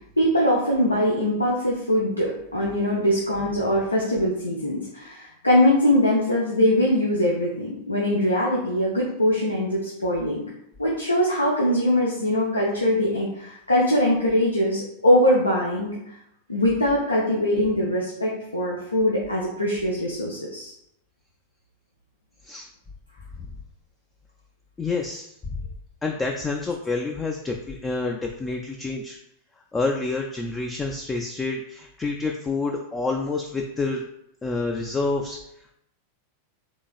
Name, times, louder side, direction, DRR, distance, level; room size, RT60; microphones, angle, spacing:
voice 1, 0.2-10.4 10.8-15.9 16.5-20.7, left 1 dB, 85° left, -3 dB, 0.6 m, -22 dB
voice 2, 24.8-25.7 26.0-29.2 29.7-34.0 34.4-35.4, left 3 dB, 15° left, 2 dB, 0.3 m, -28 dB
3.9 x 2.9 x 2.4 m, 0.77 s
figure-of-eight pair, 90°, 0 cm